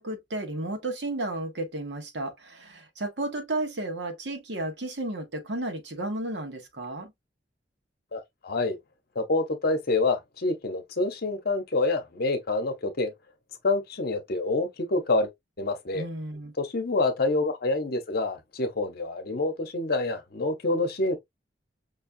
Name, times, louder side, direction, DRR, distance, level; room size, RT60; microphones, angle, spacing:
voice 1, 0.0-7.1 15.9-16.5, right 2 dB, 70° right, 1.3 m, -33 dB
voice 2, 8.1-8.8 9.1-13.1 13.6-15.3 15.6-16.1 16.6-21.2, left 2 dB, 55° left, 0.8 m, -27 dB
5.3 x 2.3 x 2.6 m
head